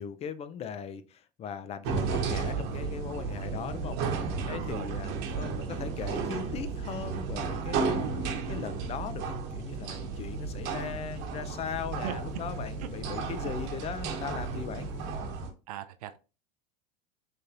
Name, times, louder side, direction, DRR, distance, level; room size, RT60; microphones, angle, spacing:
voice 1, 0.0-14.9, left 7 dB, 35° left, 0.5 m, -39 dB
sound 1, 1.8-15.5, right 5 dB, 60° right, 1.0 m, -33 dB
voice 2, 4.5-5.2 12.0-12.2 12.8-12.9 15.7-16.2, right 12 dB, 85° right, 0.5 m, -39 dB
sound 2, 10.1-15.2, left 3 dB, 65° left, 0.9 m, -47 dB
4.2 x 3.3 x 2.5 m
supercardioid pair, 110°, 19 cm